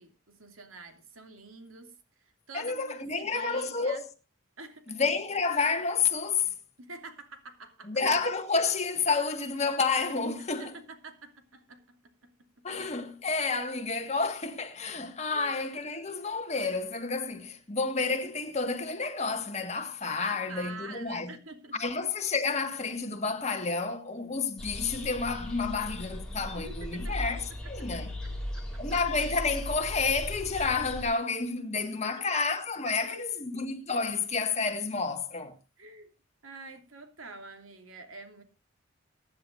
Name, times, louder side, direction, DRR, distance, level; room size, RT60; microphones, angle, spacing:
voice 1, 0.0-1.9 2.2-4.0 4.6-5.0 6.8-7.9 10.4-12.7 15.3-15.6 15.9-16.2 20.2-21.9 26.5-27.1 27.8-28.6 33.0-33.4 35.8-36.1 36.4-38.4, right 3 dB, 80° right, 2.8 m, -47 dB
voice 2, 2.5-4.1 4.9-6.5 7.9-10.7 12.6-21.3 21.8-27.4 27.7-28.1 28.8-35.5, left 4 dB, 30° left, 1.7 m, -30 dB
sound 1, 24.6-31.0, left 1 dB, 5° left, 3.9 m, -38 dB
23.5 x 10.0 x 2.6 m
head